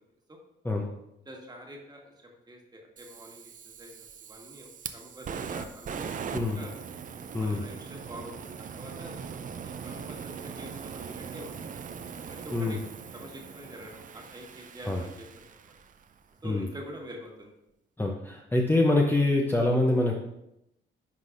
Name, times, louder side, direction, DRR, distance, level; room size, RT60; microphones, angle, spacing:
voice 1, 1.2-2.1 2.5-6.7 7.4-11.8 12.3-12.8 13.1-15.7 16.4-17.5, equal, 20° right, 0 dB, 1.5 m, -46 dB
Fire, 3.0-16.1, right 6 dB, 40° right, 0.5 m, -41 dB
voice 2, 6.3-6.6 7.3-7.6 12.5-12.8 14.9-15.0 16.4-16.7 18.0-20.2, left 2 dB, 10° left, 0 dB, 0.7 m, -25 dB
10.5 x 4.0 x 2.5 m, 0.84 s
cardioid pair, 90°, 20 cm